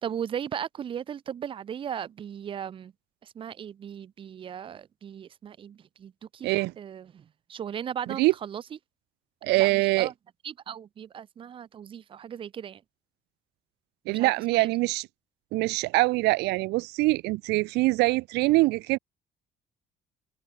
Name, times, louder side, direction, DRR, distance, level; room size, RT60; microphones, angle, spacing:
voice 1, 0.0-2.9 3.2-6.5 6.8-8.6 9.6-10.1 10.4-12.8 14.1-14.7, right 9 dB, 30° right, 0.4 m, -37 dB
voice 2, 6.4-6.7 8.2-8.3 9.4-10.1 14.1-15.1 15.5-19.0, right 21 dB, 85° right, 0.5 m, -24 dB
cardioid pair, 110°, 17 cm